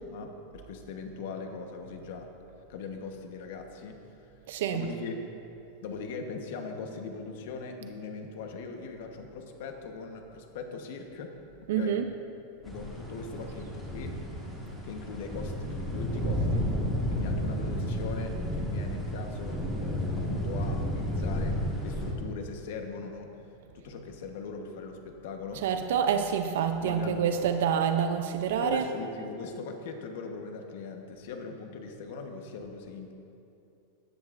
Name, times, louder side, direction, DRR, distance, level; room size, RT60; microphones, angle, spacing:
voice 1, 0.1-2.3 2.7-4.0 4.7-5.3 5.8-11.3 11.6-12.0 12.6-14.1 14.8-16.6 17.1-21.6 21.8-23.3 23.8-25.6 26.8-27.5 28.5-33.1, left 4 dB, 65° left, 4 dB, 1.2 m, -40 dB
voice 2, 4.5-4.9 11.7-12.1 25.6-28.8, right 8 dB, 75° right, 7 dB, 0.6 m, -27 dB
sound 1, 12.7-22.1, equal, 5° left, 1.7 m, -32 dB
14.5 x 10.5 x 2.6 m, 2.7 s
supercardioid pair, 160°, 0 cm